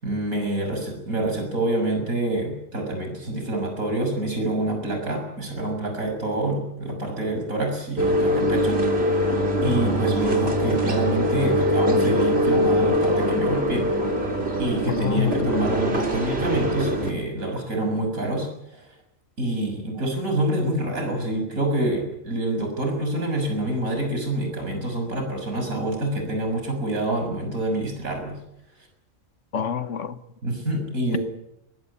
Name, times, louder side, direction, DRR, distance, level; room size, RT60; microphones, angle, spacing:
voice 1, 0.0-9.1 9.6-13.9 14.6-18.5 18.7-18.8 19.4-28.4 30.4-31.2, right 1 dB, 90° right, 7.0 m, -27 dB
sound 1, 8.0-17.1, equal, 50° right, 3.8 m, -23 dB
voice 2, 14.9-15.7 29.5-30.1, left 8 dB, 65° left, 1.5 m, -27 dB
22.5 x 21.0 x 8.6 m
omnidirectional pair, 1.4 m